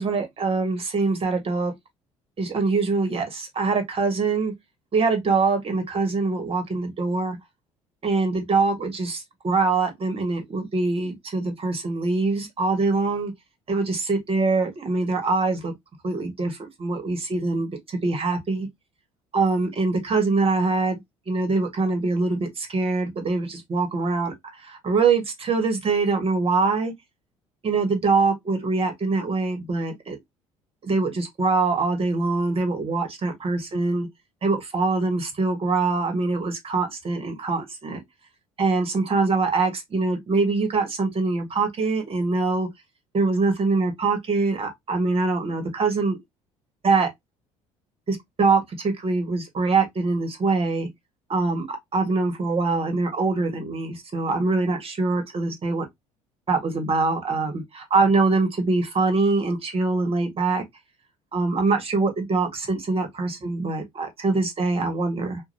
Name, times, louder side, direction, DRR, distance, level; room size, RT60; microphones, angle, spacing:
voice 1, 0.0-1.7 2.4-4.5 4.9-7.4 8.0-13.3 13.7-15.7 16.0-18.7 19.3-21.0 21.3-26.9 27.6-30.2 30.8-34.1 34.4-38.0 38.6-42.7 43.1-46.2 46.8-47.1 48.1-50.9 51.3-55.8 56.5-60.6 61.3-65.4, right 3 dB, 35° right, 1.7 m, -24 dB
4.7 x 2.7 x 2.8 m
hypercardioid pair, 55°, 16 cm